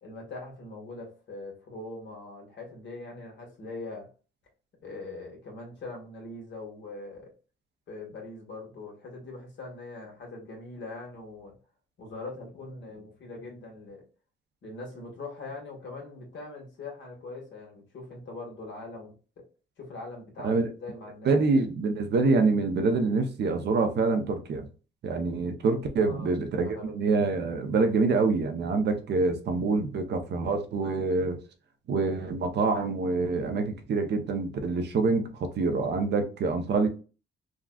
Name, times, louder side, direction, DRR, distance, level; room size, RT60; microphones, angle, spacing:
voice 1, 0.0-4.1 4.8-7.3 7.9-11.5 12.0-14.1 14.6-19.4 19.8-21.5 26.0-26.3 26.6-26.9, left 3 dB, 65° left, 1.4 m, -42 dB
voice 2, 21.2-24.6 25.0-31.4 31.9-36.9, right 3 dB, 55° right, 0.6 m, -26 dB
3.6 x 2.3 x 2.3 m
cardioid pair, 90°, 20 cm